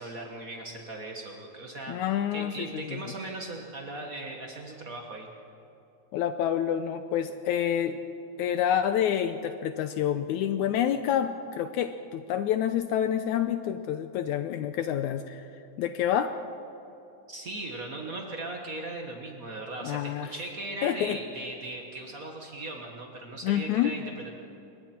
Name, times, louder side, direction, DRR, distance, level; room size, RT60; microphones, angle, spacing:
voice 1, 0.0-5.3 17.3-24.3, right 2 dB, 80° right, 1 dB, 0.7 m, -38 dB
voice 2, 1.9-3.0 6.1-8.0 8.4-15.4 15.8-16.3 19.8-20.3 20.8-21.2 23.4-23.9, left 10 dB, 85° left, 9 dB, 1.7 m, -28 dB
27.5 x 21.5 x 4.4 m, 2.8 s
omnidirectional pair, 4.0 m